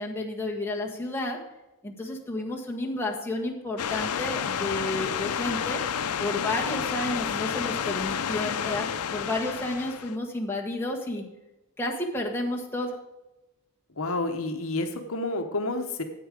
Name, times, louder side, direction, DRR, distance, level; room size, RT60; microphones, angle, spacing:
voice 1, 0.0-1.4 1.8-5.8 6.2-11.2 11.8-12.9, left 1 dB, 10° left, -1 dB, 1.6 m, -31 dB
sound 1, 3.8-10.2, left 7 dB, 85° left, 0.6 m, -30 dB
voice 2, 14.0-16.0, left 2 dB, 65° left, 6 dB, 1.0 m, -29 dB
9.9 x 8.3 x 4.9 m, 0.98 s
head